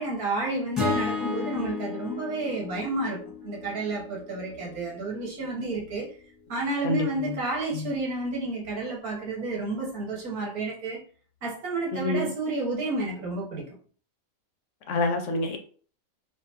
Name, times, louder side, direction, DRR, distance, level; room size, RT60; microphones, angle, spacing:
voice 1, 0.0-6.1 6.5-11.0 11.4-13.6, right 2 dB, 90° right, 1.7 m, -31 dB
sound 1, 0.8-5.0, left 4 dB, ahead, 1.4 m, -33 dB
voice 2, 6.8-7.4 7.7-7.9 11.9-12.2 14.9-15.6, left 2 dB, 65° left, 0.8 m, -27 dB
3.5 x 2.8 x 2.9 m
omnidirectional pair, 1.5 m